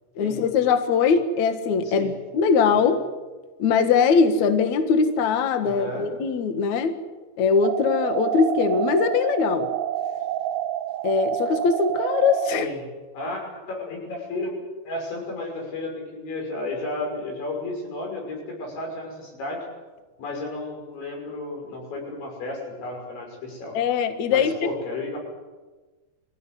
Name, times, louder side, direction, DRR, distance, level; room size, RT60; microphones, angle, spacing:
voice 1, 0.2-3.0 3.6-7.0 7.4-9.7 11.0-12.7 23.7-24.5, left 5 dB, 60° left, 8 dB, 2.1 m, -21 dB
voice 2, 5.6-6.1 12.5-12.9 13.1-14.6 14.9-19.7 20.2-23.8 24.3-25.2, left 2 dB, 80° left, 1 dB, 8.6 m, -33 dB
sound 1, 7.6-12.6, right 11 dB, 75° right, 2.9 m, -28 dB
24.5 x 15.5 x 9.9 m, 1.3 s
omnidirectional pair, 5.2 m